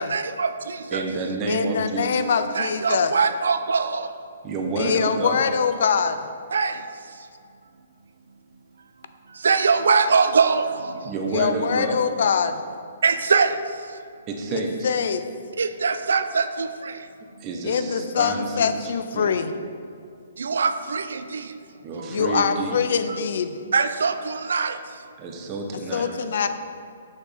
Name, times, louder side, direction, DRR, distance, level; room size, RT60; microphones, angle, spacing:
voice 1, 0.0-1.0 2.5-4.1 6.5-6.8 9.4-10.9 13.0-13.5 15.6-16.7 20.4-21.4 23.1-23.2 23.7-24.7, right 5 dB, 80° right, 10 dB, 0.3 m, -22 dB
voice 2, 0.9-2.2 4.4-5.4 11.0-12.0 14.3-15.0 17.4-19.3 21.8-22.8 25.2-26.1, right 3 dB, 30° right, 2 dB, 0.9 m, -29 dB
voice 3, 1.5-3.1 4.8-6.3 11.3-12.6 14.5-15.2 17.6-19.5 22.1-23.6 25.9-26.5, left 6 dB, 65° left, 10 dB, 0.4 m, -23 dB
6.5 x 6.0 x 3.5 m, 2.4 s
hypercardioid pair, 140°, 0 cm